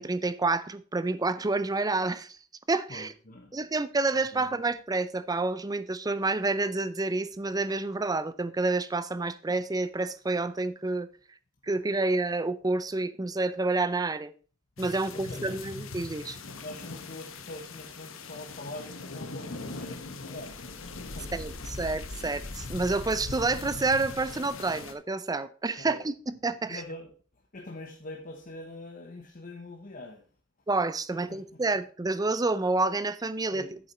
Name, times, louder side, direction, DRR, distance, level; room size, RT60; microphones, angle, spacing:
voice 1, 0.0-2.4 2.7-3.1 3.5-11.1 11.6-14.3 14.8-16.4 21.3-21.5 21.8-26.8 30.7-33.7, right 3 dB, 20° right, 0.5 m, -29 dB
voice 2, 2.9-3.6 4.3-4.6 15.1-15.6 16.5-20.6 21.1-21.7 25.8-26.0 26.7-27.1 27.5-30.2 31.1-31.6 33.5-33.8, left 2 dB, 45° left, 1.1 m, -44 dB
sound 1, 14.8-24.9, left 3 dB, 90° left, 1.1 m, -40 dB
8.7 x 7.1 x 4.3 m
head